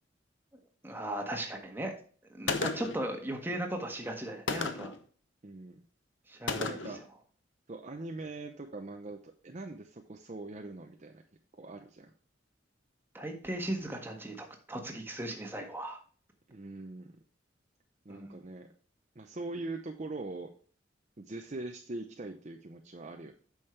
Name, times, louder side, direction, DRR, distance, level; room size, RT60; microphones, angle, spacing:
voice 1, 0.8-1.9 2.3-4.9 6.3-6.8 13.1-16.0 18.1-18.4, right 1 dB, 10° right, 2 dB, 1.5 m, -37 dB
Gunshot gunfire, 2.5-3.1 4.5-5.0 6.5-7.0, left 4 dB, 75° left, 0.9 m, -33 dB
voice 2, 5.4-5.8 6.5-7.0 7.7-11.2 11.6-12.1 16.5-17.2 18.0-18.7 19.2-20.5 21.2-23.3, right 2 dB, 40° right, 4 dB, 0.7 m, -42 dB
8.9 x 6.3 x 3.3 m, 0.42 s
head